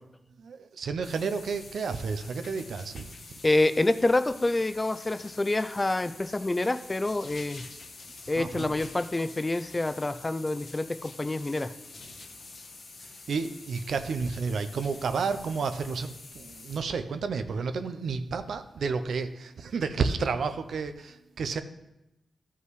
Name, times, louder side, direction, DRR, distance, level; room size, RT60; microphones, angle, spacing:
voice 1, 0.4-3.1 8.4-8.7 13.0-21.6, right 5 dB, 80° right, 9 dB, 0.5 m, -31 dB
sound 1, 1.0-16.8, left 3 dB, 60° left, 1.1 m, -47 dB
voice 2, 3.4-7.6 8.3-11.7, left 2 dB, 25° left, 11 dB, 0.4 m, -27 dB
13.0 x 5.5 x 3.2 m, 0.91 s
cardioid pair, 70°, 0 cm